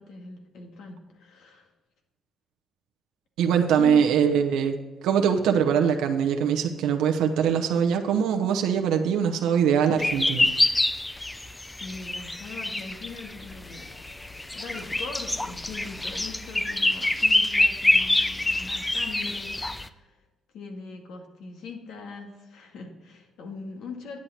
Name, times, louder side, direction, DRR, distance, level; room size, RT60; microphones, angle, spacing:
voice 1, 0.0-1.7 3.8-4.0 11.0-11.4 11.8-20.2 20.5-24.2, left 4 dB, 80° left, 3 dB, 2.0 m, -41 dB
voice 2, 3.4-4.8 5.0-10.5, right 7 dB, 90° right, 3 dB, 0.8 m, -22 dB
sound 1, 10.0-19.9, left 2 dB, 15° left, 0.6 m, -26 dB
10.5 x 8.7 x 4.3 m, 1.1 s
cardioid pair, 90°, 0 cm